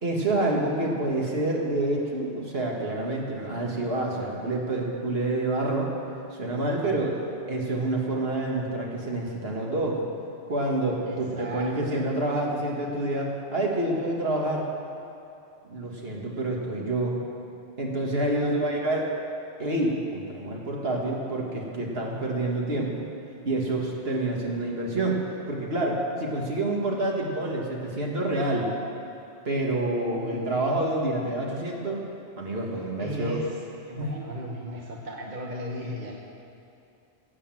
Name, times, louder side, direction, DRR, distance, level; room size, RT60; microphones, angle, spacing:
voice 1, 0.0-5.9 6.3-7.2 7.5-10.0 10.5-14.7 15.7-17.2 17.8-19.1 19.6-23.0 23.4-28.7 29.5-32.0 32.4-33.4 34.0-34.1, right 2 dB, 60° right, -1 dB, 2.1 m, -28 dB
voice 2, 6.8-7.2 11.0-12.0 18.3-18.8 30.1-30.5 33.0-33.5 33.8-36.1, equal, 45° right, -2 dB, 1.3 m, -36 dB
17.0 x 8.5 x 7.5 m, 2.7 s
omnidirectional pair, 1.2 m